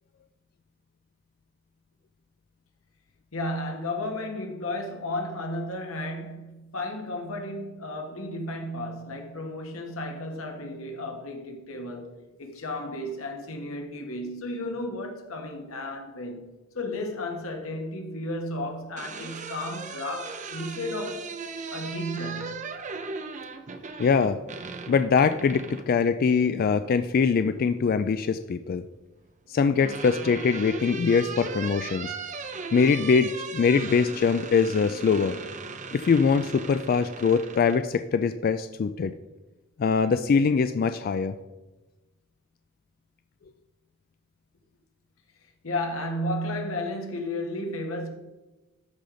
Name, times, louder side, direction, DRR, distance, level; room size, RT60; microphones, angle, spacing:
voice 1, 3.3-12.1 12.4-21.2 21.7-22.7 45.6-48.1, left 1 dB, 90° left, 1.6 m, -33 dB
sound 1, 18.7-25.9 27.4-28.1 29.3-37.8, right 4 dB, 35° right, 0.6 m, -38 dB
voice 2, 24.0-24.4 24.9-28.8 29.5-32.1 32.7-35.4 35.9-39.1 39.8-41.3, left 5 dB, 45° left, 0.3 m, -23 dB
13.5 x 5.0 x 3.9 m
head